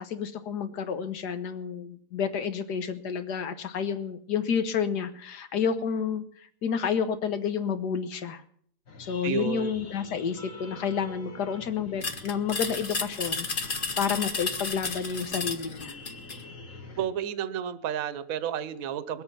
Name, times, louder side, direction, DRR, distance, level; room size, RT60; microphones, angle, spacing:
voice 1, 0.0-6.2 6.6-8.4 9.1-13.5 14.0-15.9, left 7 dB, 70° left, 10 dB, 1.6 m, -30 dB
sound 1, 8.9-17.1, left 3 dB, 50° left, 1.9 m, -46 dB
voice 2, 9.2-9.7 17.0-19.2, right 10 dB, 60° right, 14 dB, 1.1 m, -31 dB
sound 2, 12.0-16.4, left 4 dB, 35° left, 1.2 m, -32 dB
21.0 x 8.5 x 5.7 m, 0.63 s
omnidirectional pair, 1.9 m